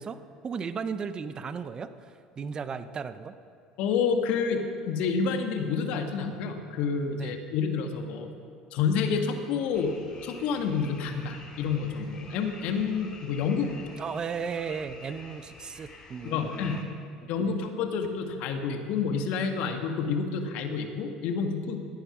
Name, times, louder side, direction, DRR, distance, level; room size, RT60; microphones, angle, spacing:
voice 1, 0.0-3.3 7.2-7.4 14.0-17.0 17.2-17.6, right 6 dB, 35° right, 12 dB, 0.8 m, -36 dB
voice 2, 3.8-4.6 4.9-8.3 8.7-9.9 10.2-13.7 16.2-16.8 17.3-21.8, left 5 dB, 65° left, 5 dB, 1.6 m, -29 dB
sound 1, 9.7-16.8, left 3 dB, 35° left, 3.5 m, -49 dB
16.0 x 8.9 x 6.0 m, 2.5 s
hypercardioid pair, 70°, 2 cm